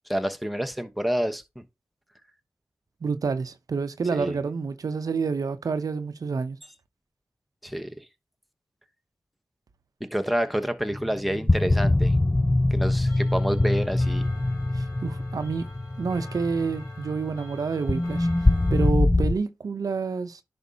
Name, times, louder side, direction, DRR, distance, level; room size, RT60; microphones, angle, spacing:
voice 1, 0.1-1.4 4.1-4.4 7.6-7.9 10.0-12.1 12.7-14.2, equal, ahead, 1.0 m, -28 dB
voice 2, 3.0-6.6 14.7-15.7 16.0-20.4, right 5 dB, 75° right, 0.7 m, -28 dB
sound 1, 10.9-19.3, left 2 dB, 20° left, 0.5 m, -24 dB
Clock, 13.1-18.9, left 2 dB, 85° left, 3.0 m, -48 dB
10.5 x 5.1 x 2.8 m
cardioid pair, 40°, 6 cm